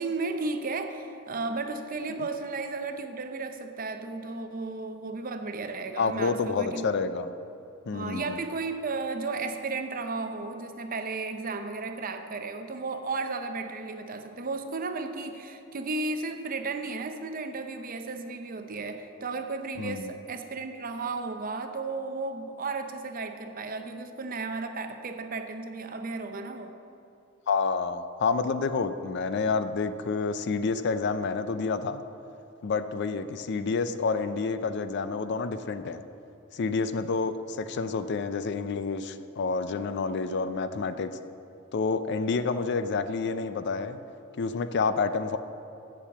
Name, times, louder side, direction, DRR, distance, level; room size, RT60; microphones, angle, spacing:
voice 1, 0.0-6.9 7.9-26.8, right 3 dB, 45° right, 7 dB, 0.7 m, -34 dB
voice 2, 6.0-7.3 7.9-8.4 19.8-20.1 27.5-32.0 32.6-36.0 36.5-41.2 41.7-44.0 44.4-45.4, left 4 dB, 55° left, 12 dB, 0.4 m, -29 dB
7.3 x 7.0 x 8.1 m, 2.7 s
head